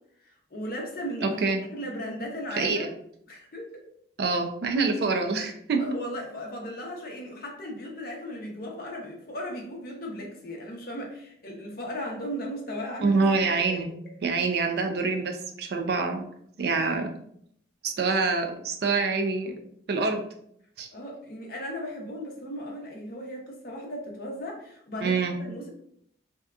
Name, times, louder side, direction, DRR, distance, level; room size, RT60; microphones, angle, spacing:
voice 1, 0.2-1.4 1.7-2.9 3.3-3.7 5.8-13.2 13.7-13.8 16.7-16.8 20.9-25.7, equal, 50° left, -1 dB, 0.6 m, -36 dB
voice 2, 1.2-1.6 2.6-2.9 4.2-5.8 13.0-13.9 14.2-16.3 16.6-17.1 17.8-19.5 19.9-20.2 20.8-20.9 25.0-25.4, right 4 dB, 55° right, 4 dB, 0.4 m, -26 dB
2.7 x 2.2 x 2.3 m, 0.69 s
head